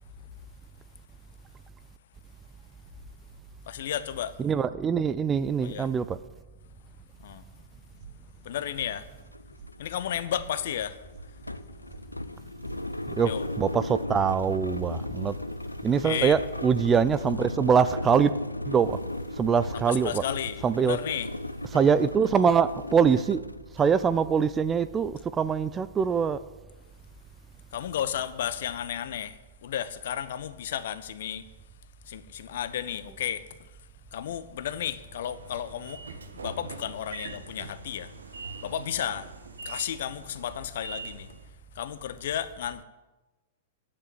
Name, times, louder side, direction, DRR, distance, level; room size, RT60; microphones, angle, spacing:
voice 1, 3.7-4.4 5.6-5.9 7.2-7.4 8.4-9.1 9.8-11.0 12.3-12.9 13.2-13.5 16.0-16.4 19.7-21.3 27.7-31.5 32.1-33.4 34.1-36.0 36.3-38.1 38.6-39.3 39.6-41.3 41.8-42.8, left 10 dB, 55° left, 0.9 m, -33 dB
voice 2, 4.4-6.2 13.2-13.3 13.6-15.4 15.8-18.3 18.7-19.0 19.4-20.2 20.6-21.0 21.7-23.4 23.8-26.4, right 6 dB, 20° right, 0.5 m, -23 dB
sound 1, 8.0-8.5 8.8-9.3 9.6-9.7 10.0-10.5 10.8-11.3 11.5-12.0 12.3-12.8 13.1-13.6 13.8-14.3, right 5 dB, 40° right, 1.6 m, -48 dB
sound 2, 8.8-8.9 9.2-24.0, left 1 dB, 85° left, 0.6 m, -36 dB
Train / Sliding door, 35.0-41.5, right 4 dB, 70° right, 1.3 m, -43 dB
10.0 x 8.7 x 9.3 m
figure-of-eight pair, 100°, 0 cm